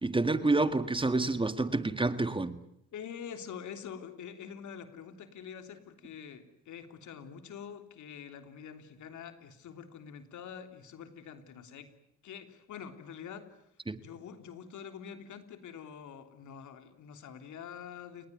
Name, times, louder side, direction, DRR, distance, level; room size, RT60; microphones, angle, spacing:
voice 1, 0.0-2.6 13.9-14.0, right 2 dB, 15° right, 1.8 m, -28 dB
voice 2, 2.9-11.9 12.2-13.6 14.0-18.3, left 7 dB, 75° left, 3.4 m, -46 dB
29.0 x 21.0 x 9.5 m
cardioid pair, 90°, 30 cm